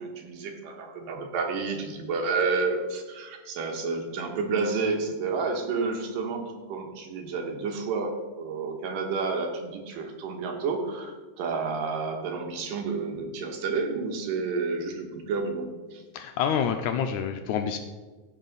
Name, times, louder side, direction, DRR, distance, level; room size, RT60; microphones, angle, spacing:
voice 1, 0.0-8.1 8.4-16.0, right 4 dB, 85° right, 3 dB, 2.8 m, -30 dB
voice 2, 16.1-17.8, left 8 dB, 80° left, 6 dB, 1.8 m, -27 dB
15.5 x 5.5 x 4.0 m, 1.3 s
omnidirectional pair, 3.8 m